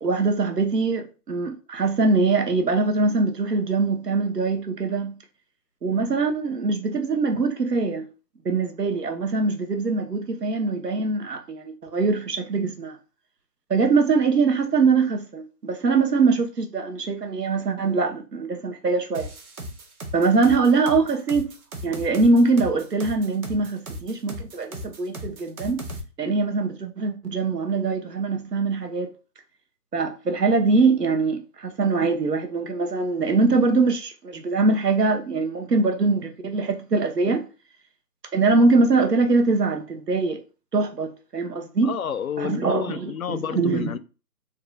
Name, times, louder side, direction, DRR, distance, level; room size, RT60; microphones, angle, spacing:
voice 1, 0.0-5.2 5.8-8.1 8.4-13.0 13.7-19.3 20.1-21.5 21.8-25.8 26.2-29.1 29.9-37.4 38.3-40.4 40.7-41.9 42.4-43.9, right 3 dB, 85° right, 1.0 m, -22 dB
sound 1, 19.1-26.0, equal, 65° right, 1.1 m, -36 dB
voice 2, 41.8-44.0, left 8 dB, 65° left, 0.5 m, -29 dB
3.8 x 2.3 x 4.0 m
figure-of-eight pair, 150°, 47 cm